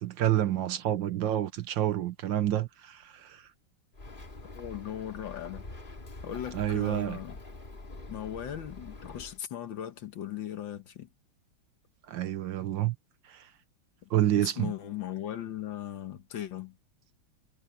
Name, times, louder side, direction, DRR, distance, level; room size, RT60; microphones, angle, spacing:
voice 1, 0.0-3.5 6.5-7.2 12.1-13.0 13.3-13.5 14.1-14.7, right 12 dB, 65° right, 1.4 m, -28 dB
Bird, 3.9-9.4, left 2 dB, 25° left, 2.2 m, -45 dB
voice 2, 4.5-5.6 6.2-7.4 8.1-11.1 14.0-14.1 14.4-16.8, left 11 dB, 65° left, 1.8 m, -38 dB
omnidirectional pair, 2.4 m